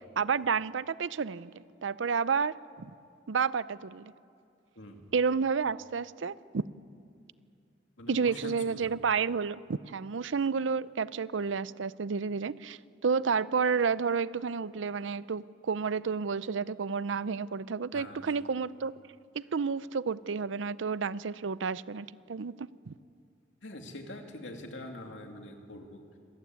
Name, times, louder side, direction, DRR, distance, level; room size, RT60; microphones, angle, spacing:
voice 1, 0.2-2.9 3.3-4.1 5.1-6.6 8.1-18.9 19.3-22.9, right 5 dB, 85° right, 18 dB, 0.6 m, -31 dB
voice 2, 8.0-8.9 17.9-18.2 23.6-26.0, left 1 dB, 80° left, 3 dB, 2.6 m, -44 dB
26.0 x 14.5 x 9.4 m, 2.4 s
head